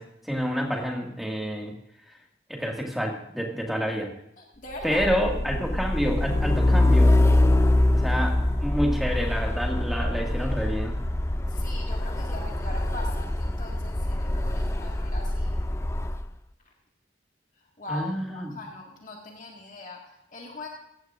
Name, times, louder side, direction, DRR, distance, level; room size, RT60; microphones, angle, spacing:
voice 1, 0.0-1.7 2.5-4.1 4.8-7.1 7.9-10.9 17.9-18.6, equal, ahead, 0 dB, 2.0 m, -28 dB
voice 2, 4.4-5.1 11.5-15.6 17.8-20.7, left 2 dB, 45° left, -1 dB, 1.9 m, -40 dB
Truck, 4.8-16.2, left 1 dB, 15° left, 0.4 m, -24 dB
17.0 x 14.5 x 2.6 m, 0.77 s
head